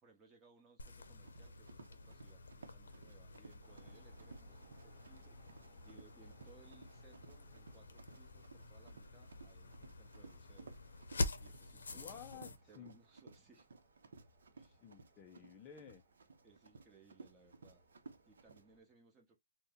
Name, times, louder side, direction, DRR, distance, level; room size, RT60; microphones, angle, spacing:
voice 1, 0.0-10.7 11.4-13.7 16.4-17.8 18.3-19.4, right 4 dB, 15° right, 0.9 m, -66 dB
sound 1, 0.8-12.6, left 2 dB, 80° left, 0.6 m, -47 dB
Run, 1.2-18.6, right 4 dB, 75° right, 0.7 m, -58 dB
sound 2, 3.6-18.8, right 3 dB, 45° right, 1.1 m, -69 dB
voice 2, 11.9-12.9 14.6-16.0, left 8 dB, 20° left, 0.4 m, -54 dB
2.6 x 2.1 x 3.8 m
hypercardioid pair, 150°, 0 cm